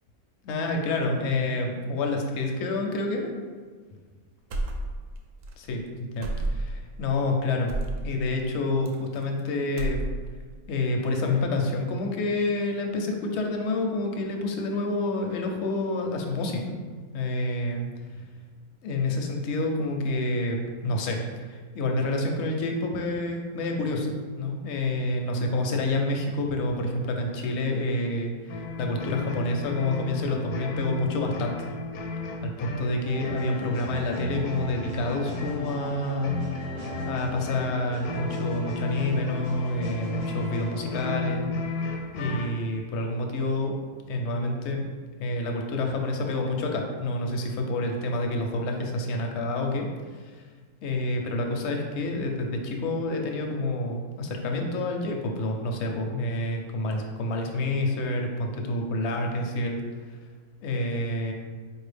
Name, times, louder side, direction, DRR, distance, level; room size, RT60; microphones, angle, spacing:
voice 1, 0.4-3.3 5.6-7.8 8.0-10.0 10.7-16.8 17.1-17.9 18.8-20.6 20.8-24.1 24.3-31.5 32.4-36.4 36.8-41.5 42.1-43.7 44.1-44.8 45.2-49.9 50.2-50.3 50.8-59.8 60.6-61.3, left 2 dB, 65° left, 2 dB, 0.7 m, -28 dB
sound 1, 4.5-5.2 5.4-5.6 6.2-6.8 7.7-8.0 8.9-9.4 9.7-10.4, right 2 dB, 70° right, 0.9 m, -30 dB
sound 2, 28.5-42.6, left 3 dB, 85° left, 1.1 m, -34 dB
sound 3, 33.0-41.2, right 2 dB, 40° right, 0.6 m, -42 dB
4.4 x 2.6 x 3.3 m, 1.5 s
omnidirectional pair, 1.6 m